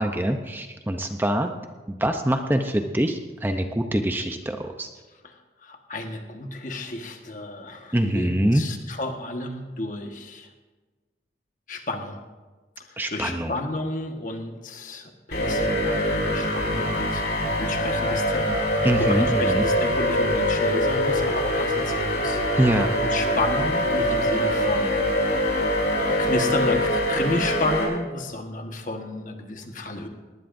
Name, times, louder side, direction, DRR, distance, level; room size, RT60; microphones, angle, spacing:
voice 1, 0.0-1.5 1.9-4.9 7.9-8.6 13.0-13.5 18.8-19.6 22.6-22.9, right 1 dB, 10° right, 5 dB, 0.6 m, -24 dB
voice 2, 5.2-10.5 11.7-12.2 12.8-22.4 23.0-25.7 25.9-30.1, left 2 dB, 45° left, 4 dB, 1.4 m, -32 dB
sound 1, 15.3-27.8, equal, 90° left, 4.9 m, -24 dB
19.0 x 19.0 x 2.6 m, 1.3 s
head